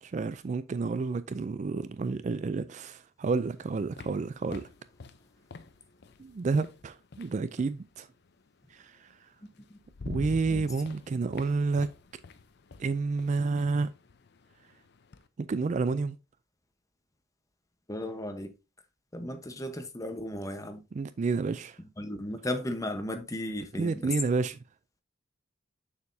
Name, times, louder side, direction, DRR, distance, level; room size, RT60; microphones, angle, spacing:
voice 1, 0.0-4.7 6.2-8.1 8.7-9.1 10.1-11.9 12.8-13.9 15.4-16.2 20.9-21.8 23.8-24.6, right 4 dB, 35° right, 0.3 m, -30 dB
sound 1, 3.3-7.8 9.1-9.2 9.6-15.3, left 3 dB, 55° left, 0.6 m, -46 dB
voice 2, 17.9-18.5 19.1-20.8 22.0-24.1, left 1 dB, 15° left, 0.9 m, -35 dB
6.8 x 6.6 x 2.7 m
head